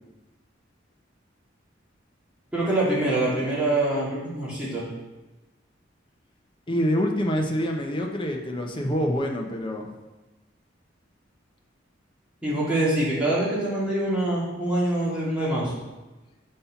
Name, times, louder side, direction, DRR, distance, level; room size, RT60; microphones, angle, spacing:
voice 1, 2.5-4.8 12.4-15.7, right 1 dB, 5° right, -9 dB, 2.2 m, -25 dB
voice 2, 6.7-9.9, equal, 25° left, 1 dB, 0.7 m, -26 dB
5.3 x 4.3 x 5.8 m, 1.1 s
head